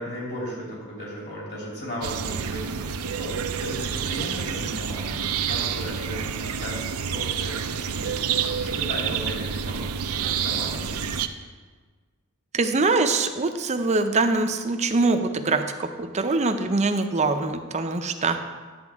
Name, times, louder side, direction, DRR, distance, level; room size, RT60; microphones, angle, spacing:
voice 1, 0.0-5.2 5.5-11.5, equal, 50° left, -5 dB, 3.1 m, -36 dB
sound 1, 2.0-11.3, right 7 dB, 75° right, 0.5 m, -28 dB
voice 2, 12.5-18.4, right 3 dB, 30° right, 7 dB, 0.6 m, -23 dB
11.0 x 8.7 x 3.5 m, 1.4 s
head